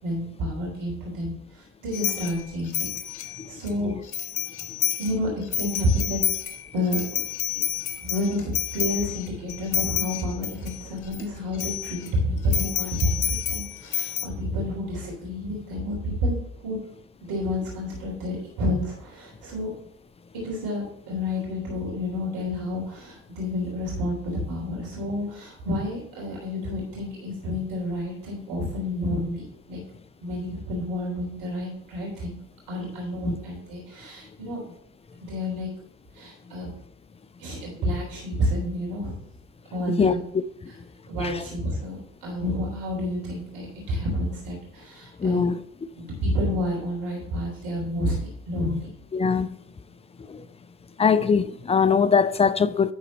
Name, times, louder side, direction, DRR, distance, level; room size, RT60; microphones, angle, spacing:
voice 1, 0.0-3.9 5.0-6.2 6.7-7.0 8.0-16.8 17.2-19.7 20.3-29.8 30.2-32.4 32.7-34.6 35.2-35.7 36.1-36.7 37.4-39.1 39.7-40.2 40.7-40.8 41.1-45.5 46.0-48.9, left 1 dB, 65° right, 3.5 m, -29 dB
sound 1, 1.9-3.7 4.1-5.2 5.4-11.2 11.5-12.1 12.5-14.3, left 10 dB, 55° left, 1.0 m, -29 dB
voice 2, 45.2-45.6 49.1-49.5 50.3-50.5 51.0-52.9, left 6 dB, 15° left, 0.5 m, -21 dB
11.0 x 4.2 x 4.1 m
hypercardioid pair, 65°, 38 cm